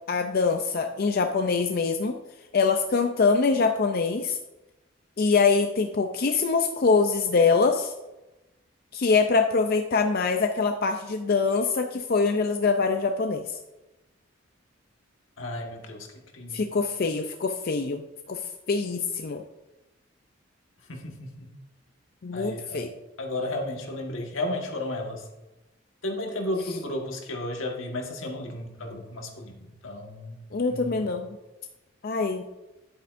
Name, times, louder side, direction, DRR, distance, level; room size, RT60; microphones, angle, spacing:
voice 1, 0.1-2.2 2.5-4.4 5.2-7.9 8.9-13.5 16.5-18.0 18.3-18.4 18.7-19.4 22.2-22.9 30.5-31.3 32.0-32.4, left 4 dB, 50° left, 5 dB, 0.5 m, -24 dB
voice 2, 15.4-16.6 20.9-21.5 22.3-22.9 23.2-25.3 26.0-30.4 30.7-31.1, left 1 dB, 80° left, 2 dB, 1.5 m, -33 dB
10.5 x 8.5 x 2.6 m, 1.0 s
head